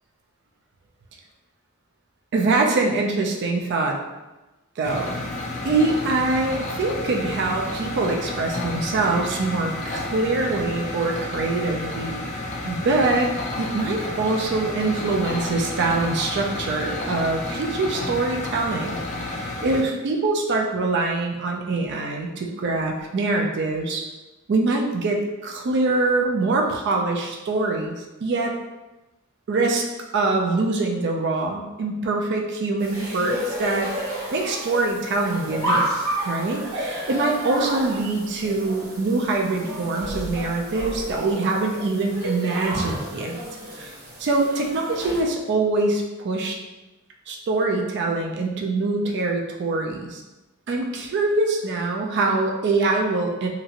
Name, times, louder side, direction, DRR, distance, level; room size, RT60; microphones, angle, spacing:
voice 1, 2.3-4.0 4.8-5.2 5.6-13.3 13.6-24.0 24.5-28.0 28.2-28.6 29.5-29.9 30.1-33.9 34.3-35.8 36.3-43.4 43.8-43.9 44.2-46.6 47.3-50.2 50.7-53.5, right 3 dB, 55° right, 1 dB, 0.4 m, -24 dB
sound 1, 4.8-19.8, left 2 dB, 35° left, 0.4 m, -31 dB
sound 2, 32.8-45.2, equal, 75° right, 0.8 m, -31 dB
2.8 x 2.5 x 2.8 m, 1.1 s
head